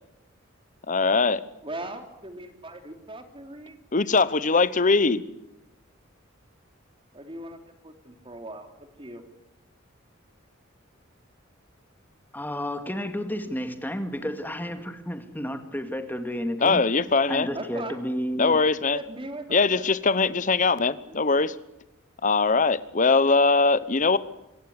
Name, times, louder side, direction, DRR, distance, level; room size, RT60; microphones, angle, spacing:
voice 1, 0.9-1.4 3.9-5.2 16.6-17.5 18.4-19.0 19.5-21.5 22.2-24.2, left 4 dB, 40° left, 17 dB, 1.0 m, -21 dB
voice 2, 1.6-3.8 7.1-7.6 7.8-8.7 9.0-9.2 17.5-18.0 18.9-19.8 20.2-20.3 21.1-21.2, right 1 dB, 25° right, 7 dB, 3.0 m, -39 dB
voice 3, 12.3-16.9 17.3-18.6, equal, 10° left, 8 dB, 2.1 m, -31 dB
26.0 x 17.0 x 9.9 m, 0.91 s
head